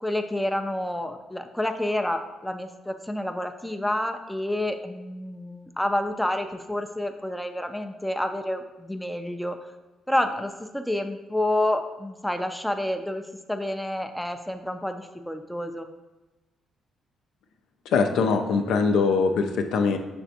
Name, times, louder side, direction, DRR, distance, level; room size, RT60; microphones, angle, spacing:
voice 1, 0.0-9.6 10.1-13.2 13.5-15.9, left 1 dB, 5° left, 6 dB, 0.3 m, -29 dB
voice 2, 17.9-20.0, left 4 dB, 80° left, 6 dB, 0.4 m, -22 dB
5.9 x 3.3 x 2.8 m, 1.1 s
cardioid pair, 90°, 0 cm